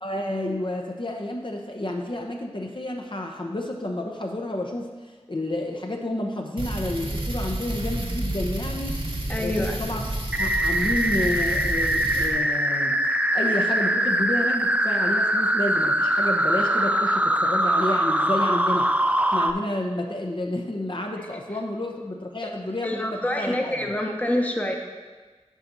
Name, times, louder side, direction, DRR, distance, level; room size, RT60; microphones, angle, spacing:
voice 1, 0.0-4.9 5.3-9.0 9.4-10.0 10.4-13.0 13.3-18.9 19.3-23.9, left 1 dB, 45° left, 1 dB, 0.9 m, -30 dB
sound 1, 6.6-12.3, right 1 dB, 50° right, 1.2 m, -30 dB
voice 2, 9.3-9.8 22.8-24.8, left 1 dB, 15° left, 2 dB, 0.9 m, -26 dB
sound 2, 10.3-19.5, right 1 dB, 10° right, 0.4 m, -22 dB
7.3 x 4.3 x 6.7 m, 1.4 s
wide cardioid pair, 40°, 11 cm